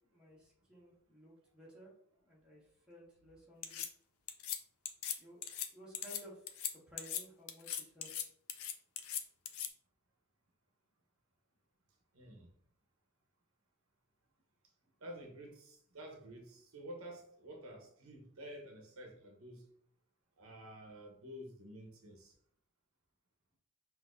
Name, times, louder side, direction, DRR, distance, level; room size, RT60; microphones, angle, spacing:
voice 1, 0.1-1.9 2.2-3.8 5.2-5.4 5.7-8.3, equal, 5° right, -7 dB, 1.5 m, -56 dB
sound 1, 3.6-3.9 4.3-4.6 4.8-5.2 5.4-5.7 5.9-6.2 6.5-6.7 7.0-7.2 7.5-8.2 8.5-9.7, left 9 dB, 75° left, 0.5 m, -39 dB
voice 2, 12.1-12.5 15.0-19.6 20.4-22.3, equal, 75° right, 2 dB, 0.9 m, -50 dB
5.8 x 2.8 x 2.6 m, 0.63 s
head